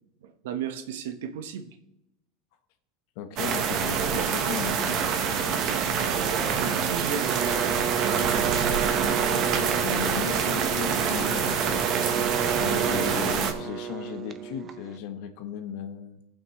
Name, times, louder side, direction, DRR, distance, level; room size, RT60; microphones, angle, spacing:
voice 1, 0.2-1.8 4.1-4.3 6.0-7.9, right 7 dB, 85° right, 8 dB, 1.1 m, -35 dB
voice 2, 3.2-5.1 9.3-11.8 12.1-16.2, left 9 dB, 60° left, 9 dB, 1.1 m, -36 dB
sound 1, 3.4-13.5, right 7 dB, 40° right, 1.1 m, -26 dB
sound 2, 7.2-15.0, right 8 dB, 25° right, 0.6 m, -32 dB
17.5 x 6.0 x 3.1 m, 0.86 s
supercardioid pair, 150°, 0 cm